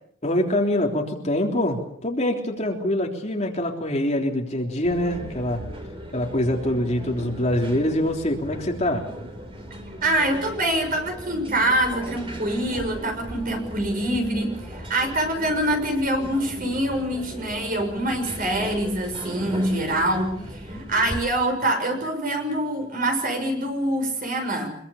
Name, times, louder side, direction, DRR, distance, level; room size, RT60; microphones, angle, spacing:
voice 1, 0.2-5.6 6.1-9.0, left 1 dB, 30° left, 1 dB, 3.4 m, -24 dB
sound 1, 4.8-21.2, equal, 25° right, 4.3 m, -38 dB
voice 2, 10.0-24.7, right 1 dB, 40° right, 4 dB, 6.4 m, -25 dB
25.0 x 22.5 x 7.2 m, 0.67 s
head